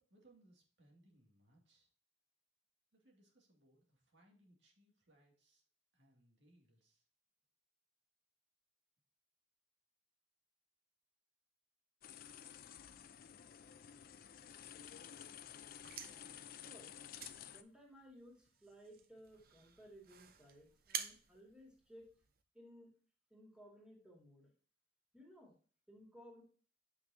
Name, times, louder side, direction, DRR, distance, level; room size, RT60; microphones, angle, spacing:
voice 1, 0.0-1.9 2.9-5.6 5.9-7.0, right 1 dB, 80° right, 0 dB, 2.2 m, -69 dB
sound 1, 12.0-17.6, left 9 dB, 55° left, 0.5 m, -53 dB
sound 2, 15.6-22.4, right 8 dB, 55° right, 0.6 m, -50 dB
voice 2, 16.4-17.2 17.5-22.1 22.5-22.9 23.3-24.5 25.1-25.5 25.9-26.4, equal, 5° right, -1 dB, 2.3 m, -59 dB
7.6 x 5.9 x 2.7 m, 0.41 s
head